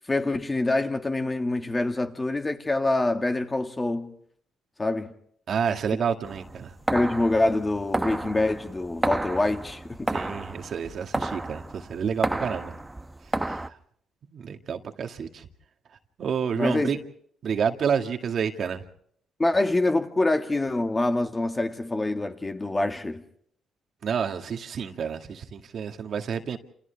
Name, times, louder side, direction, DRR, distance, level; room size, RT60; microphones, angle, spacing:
voice 1, 0.1-4.1 4.8-5.1 6.9-10.1 16.6-17.0 19.4-23.2, left 2 dB, 20° left, 2.0 m, -25 dB
voice 2, 5.5-6.7 10.1-12.7 13.4-13.8 14.3-15.5 16.2-17.0 17.4-18.8 24.0-26.6, right 7 dB, 60° right, 2.1 m, -29 dB
sound 1, 6.2-13.7, right 2 dB, 15° right, 1.0 m, -31 dB
28.5 x 28.5 x 3.5 m
cardioid pair, 90°, 0 cm